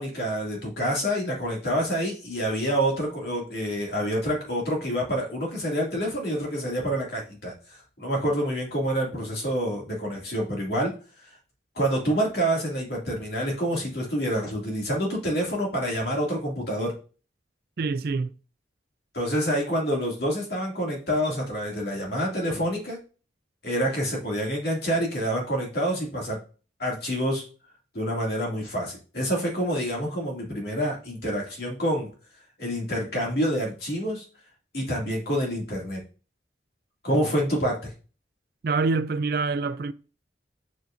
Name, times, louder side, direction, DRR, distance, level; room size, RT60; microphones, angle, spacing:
voice 1, 0.0-10.9 11.7-16.9 19.1-23.0 23.6-26.4 26.8-27.4 27.9-32.1 32.6-34.2 34.7-36.0 37.0-37.8, equal, 60° left, 2.4 m, -27 dB
voice 2, 17.8-18.3 38.6-39.9, right 4 dB, 55° right, 0.4 m, -26 dB
7.3 x 6.3 x 2.6 m
head